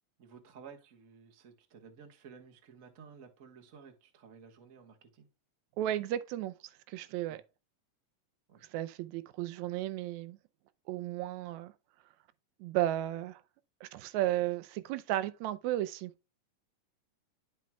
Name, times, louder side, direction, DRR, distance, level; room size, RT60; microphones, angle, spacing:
voice 1, 0.2-5.3 7.3-7.4 8.5-8.7, right 6 dB, 60° right, 0.8 m, -54 dB
voice 2, 5.8-6.5 6.9-7.4 8.7-10.4 10.9-11.7 12.6-13.4 13.8-16.1, right 14 dB, 75° right, 1.8 m, -34 dB
12.5 x 4.5 x 2.3 m
omnidirectional pair, 3.7 m